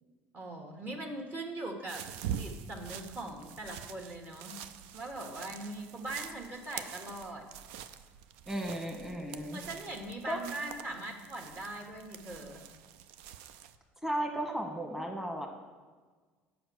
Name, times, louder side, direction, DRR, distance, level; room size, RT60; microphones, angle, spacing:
voice 1, 0.3-2.1 2.4-4.6 4.9-7.5 9.5-12.6, right 2 dB, 35° right, 2 dB, 1.5 m, -41 dB
sound 1, 1.9-13.8, right 9 dB, 75° right, 0.4 m, -45 dB
voice 2, 8.5-9.6 10.3-10.4 14.0-15.5, right 1 dB, 5° right, 0 dB, 1.3 m, -35 dB
7.8 x 5.2 x 6.3 m, 1.4 s
hypercardioid pair, 75°, 6 cm